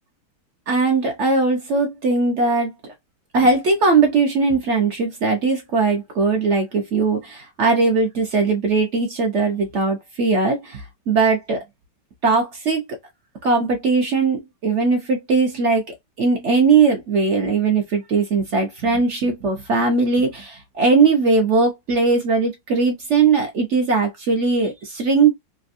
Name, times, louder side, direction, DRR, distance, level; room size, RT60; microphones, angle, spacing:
voice 1, 0.7-2.9 3.3-11.6 12.2-13.0 13.4-25.3, right 4 dB, 60° right, 0.7 m, -19 dB
3.4 x 2.2 x 2.5 m
omnidirectional pair, 2.0 m